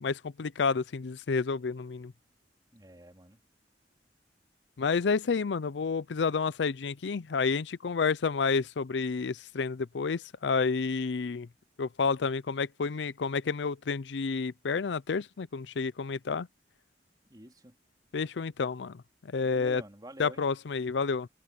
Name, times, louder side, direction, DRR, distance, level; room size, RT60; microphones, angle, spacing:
voice 1, 0.0-2.1 4.8-11.5 11.8-16.5 18.1-19.8 20.2-21.3, left 5 dB, 80° left, 0.5 m, -30 dB
voice 2, 2.7-3.4 17.3-17.8 19.4-20.4, right 1 dB, 20° right, 3.8 m, -48 dB
head